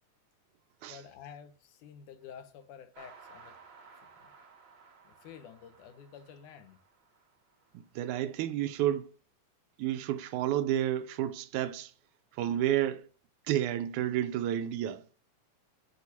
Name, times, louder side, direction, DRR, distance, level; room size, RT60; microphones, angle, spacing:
voice 1, 0.9-3.6 4.2-4.3 5.0-6.8, left 8 dB, 80° left, 2.4 m, -50 dB
sound 1, 2.9-7.8, right 5 dB, 50° right, 2.6 m, -57 dB
voice 2, 7.7-9.1 9.8-11.9 12.3-13.1 13.5-15.0, right 12 dB, 80° right, 1.9 m, -30 dB
12.5 x 4.6 x 2.8 m
omnidirectional pair, 3.6 m